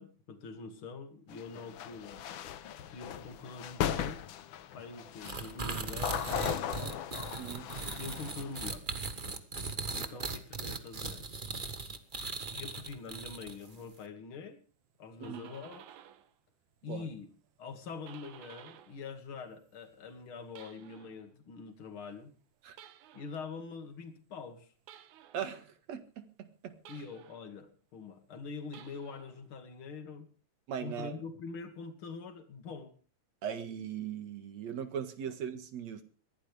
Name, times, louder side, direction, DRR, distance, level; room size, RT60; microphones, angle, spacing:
voice 1, 0.0-2.2 2.9-4.2 4.7-7.0 8.0-8.9 9.2-9.4 9.9-11.3 12.5-14.6 15.0-15.8 16.8-17.3 17.6-22.3 23.1-24.7 26.9-30.3 30.8-32.9 35.3-35.4, left 4 dB, 45° left, 2.8 m, -44 dB
sound 1, 1.3-8.6, left 10 dB, 75° left, 1.1 m, -38 dB
sound 2, 5.2-13.7, right 3 dB, 45° right, 0.6 m, -38 dB
voice 2, 7.4-7.7 15.2-15.5 16.9-17.1 22.6-22.8 25.3-26.8 30.7-31.2 33.4-36.0, right 8 dB, 65° right, 2.9 m, -39 dB
sound 3, 14.9-16.3 16.7-19.1 19.4-21.2 22.7-23.4 24.9-25.5 26.9-27.5 28.6-29.4, right 10 dB, 80° right, 2.5 m, -55 dB
21.5 x 16.0 x 3.4 m
omnidirectional pair, 3.4 m